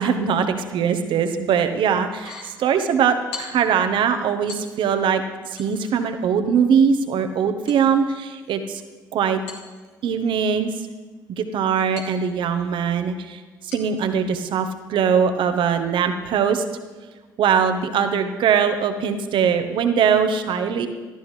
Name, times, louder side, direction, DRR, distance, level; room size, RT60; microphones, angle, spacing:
voice 1, 0.0-8.8 9.1-9.4 10.0-10.7 11.3-16.6 17.4-20.9, right 7 dB, 60° right, 8 dB, 1.1 m, -21 dB
sound 1, 2.1-2.6 3.3-3.8 4.5-5.1 5.6-6.1 7.7-8.7 9.5-10.3 12.0-12.7 13.7-14.1 14.5-14.7, left 4 dB, 75° left, 2.2 m, -41 dB
17.0 x 13.0 x 3.3 m, 1.3 s
hypercardioid pair, 50°, 9 cm